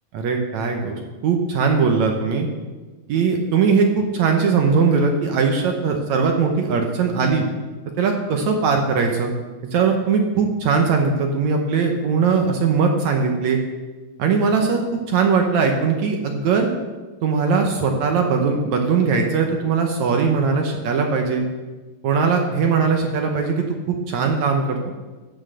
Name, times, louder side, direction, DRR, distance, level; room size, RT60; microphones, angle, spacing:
voice 1, 0.1-0.9 1.2-2.5 3.1-7.4 8.0-9.3 9.7-13.6 14.2-16.7 17.2-21.4 22.0-24.9, right 5 dB, 65° right, 3 dB, 2.0 m, -20 dB
13.0 x 6.4 x 7.7 m, 1.3 s
omnidirectional pair, 4.0 m